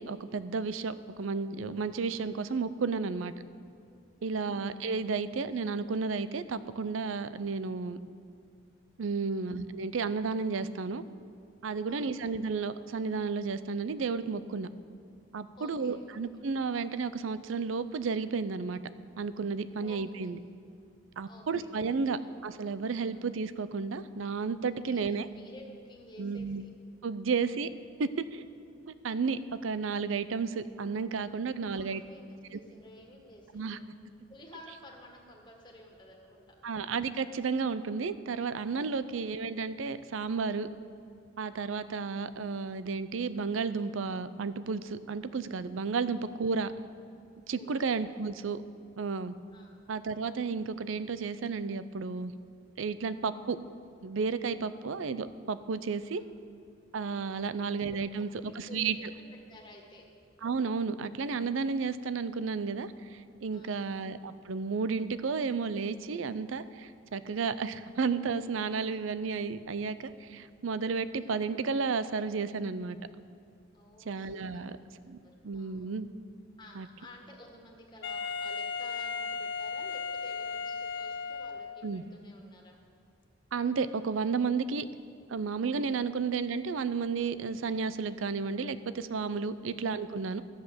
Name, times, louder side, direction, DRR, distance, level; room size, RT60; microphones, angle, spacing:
voice 1, 0.0-3.3 4.2-8.0 9.0-11.0 11.6-14.7 15.3-18.8 19.2-20.4 21.2-25.3 26.2-26.6 27.0-27.7 28.0-28.4 29.0-32.0 33.5-33.8 36.6-40.7 41.4-46.7 47.5-48.6 49.0-49.3 49.9-52.3 52.8-53.6 54.0-56.2 56.9-59.0 60.4-73.0 74.0-74.8 75.1-75.2 75.4-76.1 76.8-76.9 81.8-82.0 83.5-84.9 85.3-90.4, right 5 dB, 85° right, 14 dB, 0.5 m, -32 dB
voice 2, 4.2-4.7 9.3-9.6 11.9-12.3 15.6-16.2 19.8-20.3 21.3-22.0 23.1-23.2 24.8-26.7 27.4-27.6 31.6-33.9 34.3-36.5 38.9-39.1 45.9-46.0 47.5-47.7 48.1-48.2 49.5-49.8 56.1-56.3 57.3-57.6 58.2-60.0 63.5-63.9 73.7-74.9 75.2-76.0 76.6-82.8 85.9-86.0, left 1 dB, 25° left, -1 dB, 1.7 m, -53 dB
Wind instrument woodwind instrument, 78.0-81.9, left 5 dB, 60° left, 0.5 m, -36 dB
12.0 x 8.0 x 6.8 m, 2.4 s
head